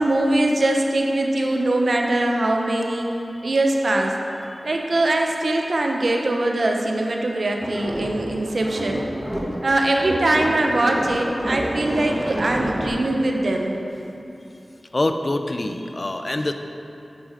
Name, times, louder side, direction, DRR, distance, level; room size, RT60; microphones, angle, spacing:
voice 1, 0.0-3.1 3.4-4.2 4.6-9.1 9.6-13.8, right 2 dB, 70° right, 1 dB, 0.9 m, -22 dB
sound 1, 7.6-9.7 10.0-12.9, equal, 20° right, 1.5 m, -28 dB
voice 2, 14.9-16.5, left 2 dB, 45° left, 6 dB, 0.6 m, -24 dB
8.8 x 6.3 x 5.1 m, 2.9 s
cardioid pair, 45°, 0 cm